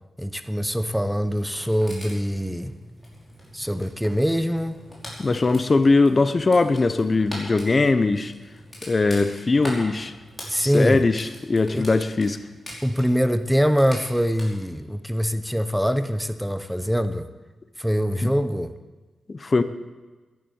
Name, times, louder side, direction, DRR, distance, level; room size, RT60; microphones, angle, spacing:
voice 1, 0.2-2.7 3.5-4.8 10.5-11.0 11.7-11.9 12.8-17.3 17.8-18.7, equal, ahead, 10 dB, 0.7 m, -23 dB
sound 1, 1.2-14.4, equal, 15° left, 5.0 m, -42 dB
voice 2, 5.2-8.3 8.8-10.1 10.6-12.4 18.2-18.3 19.3-19.6, left 3 dB, 35° left, 11 dB, 0.7 m, -20 dB
11.0 x 11.0 x 8.6 m, 1.2 s
cardioid pair, 95°, 0 cm